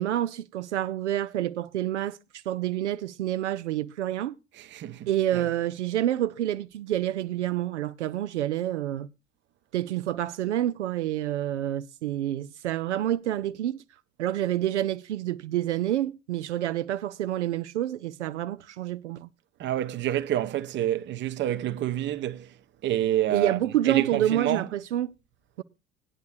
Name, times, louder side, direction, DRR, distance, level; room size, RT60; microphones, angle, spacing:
voice 1, 0.0-4.4 5.1-9.1 9.7-13.8 14.2-19.3 23.3-25.1 25.6-25.7, right 12 dB, 70° right, 0.5 m, -28 dB
voice 2, 4.6-5.4 19.6-22.5 22.8-23.6 23.9-24.7, right 12 dB, 30° right, 0.7 m, -28 dB
18.5 x 10.5 x 2.6 m
figure-of-eight pair, 70°, 36 cm